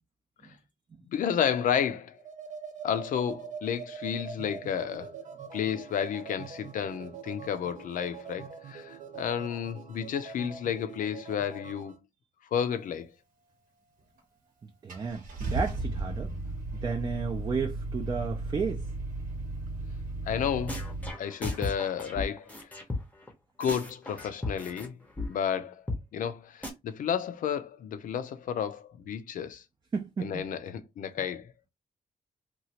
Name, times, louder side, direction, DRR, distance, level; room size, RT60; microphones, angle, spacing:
voice 1, 1.1-2.2 2.8-5.1 5.5-12.0 12.5-13.1 20.3-20.8 21.2-22.5 23.6-24.9 25.3-25.8 26.1-29.6 30.2-31.5, left 8 dB, 75° left, 0.5 m, -31 dB
sound 1, 2.1-12.0, right 6 dB, 65° right, 0.7 m, -44 dB
Car / Engine starting, 14.2-14.3 14.9-21.1, right 2 dB, 80° right, 1.1 m, -35 dB
voice 2, 14.8-15.2 15.5-16.3 16.7-18.8 29.9-30.5, right 5 dB, 30° right, 0.4 m, -32 dB
sound 2, 20.7-23.3 23.6-24.9 25.2-25.3 25.5-25.6 25.9-26.0 26.3-26.4 26.6-26.7, left 2 dB, 10° left, 0.7 m, -35 dB
3.0 x 2.4 x 2.8 m
wide cardioid pair, 135°, 14 cm